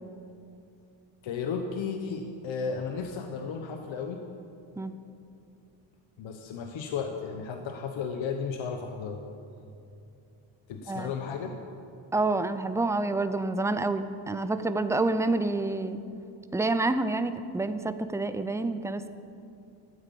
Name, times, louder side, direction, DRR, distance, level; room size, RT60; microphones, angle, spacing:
voice 1, 1.2-4.3 6.2-9.2 10.7-11.6, left 5 dB, 70° left, 4 dB, 1.1 m, -34 dB
voice 2, 12.1-16.0 16.5-19.1, right 2 dB, 5° right, 11 dB, 0.4 m, -28 dB
13.0 x 8.8 x 8.4 m, 2.6 s
cardioid pair, 140°, 49 cm